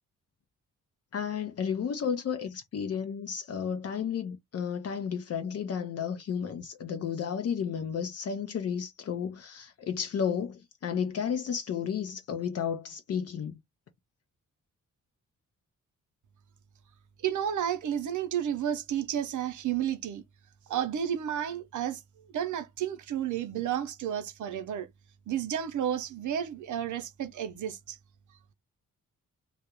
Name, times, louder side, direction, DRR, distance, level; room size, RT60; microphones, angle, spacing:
voice 1, 1.1-13.6, left 7 dB, 50° left, 0.5 m, -32 dB
voice 2, 17.2-20.2 20.7-22.0 22.3-24.9 25.3-28.0, right 10 dB, 70° right, 0.6 m, -31 dB
2.4 x 2.0 x 2.8 m
cardioid pair, 100°, 31 cm